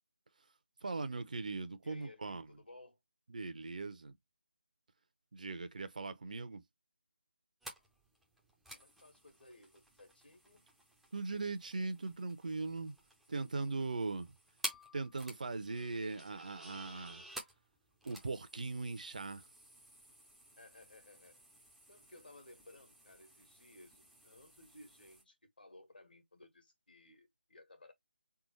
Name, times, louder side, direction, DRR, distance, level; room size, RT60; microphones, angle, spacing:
voice 1, 0.8-2.5 3.3-4.1 5.3-6.6 11.1-13.0 13.3-14.3 14.9-17.3 18.0-19.5, right 3 dB, 45° right, 0.7 m, -40 dB
voice 2, 1.8-3.0 8.7-10.6 20.6-21.4 21.9-27.9, left 2 dB, 65° left, 1.6 m, -59 dB
sound 1, 7.6-25.2, right 1 dB, ahead, 0.5 m, -52 dB
3.7 x 3.5 x 3.1 m
figure-of-eight pair, 155°, 6 cm